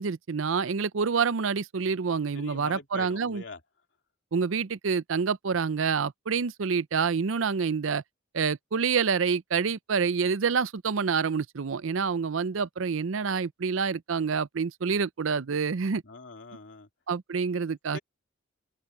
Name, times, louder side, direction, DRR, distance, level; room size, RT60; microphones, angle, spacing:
voice 1, 0.0-3.4 4.3-8.0 8.3-16.0 17.1-18.0, right 5 dB, 85° right, 0.6 m, -27 dB
voice 2, 2.3-3.6 16.0-16.9 17.9-18.0, left 3 dB, 65° left, 3.0 m, -43 dB
head